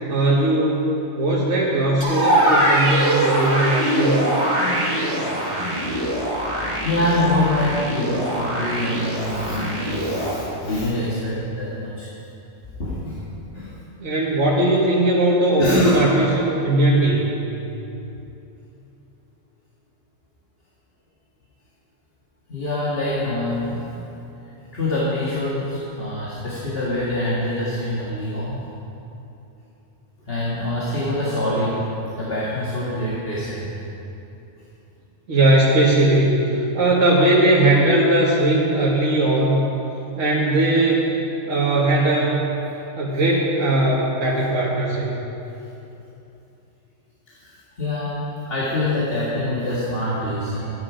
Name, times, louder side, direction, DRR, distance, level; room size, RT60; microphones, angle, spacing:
voice 1, 0.1-4.2 14.0-17.4 35.3-39.6 40.2-41.2 41.5-42.4 43.0-45.1, right 1 dB, 70° right, -6 dB, 1.8 m, -19 dB
sound 1, 2.0-10.3, right 1 dB, 25° right, 2.3 m, -22 dB
voice 2, 6.8-12.1 12.8-13.2 13.5-13.7 15.6-16.2 22.5-23.8 24.7-28.7 30.3-31.8 32.2-33.7 44.4-44.5 47.4-50.7, left 1 dB, 45° left, -8 dB, 2.0 m, -25 dB
13.0 x 10.0 x 5.0 m, 2.9 s
omnidirectional pair, 1.3 m